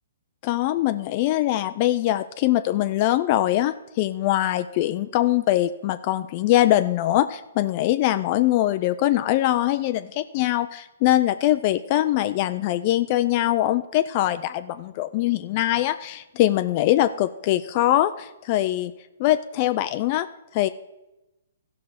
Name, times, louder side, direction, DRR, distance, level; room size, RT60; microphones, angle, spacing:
voice 1, 0.4-18.9 19.2-20.3 20.5-20.7, left 14 dB, 35° left, 11 dB, 0.3 m, -22 dB
14.0 x 5.8 x 4.9 m, 0.98 s
hypercardioid pair, 145°, 0 cm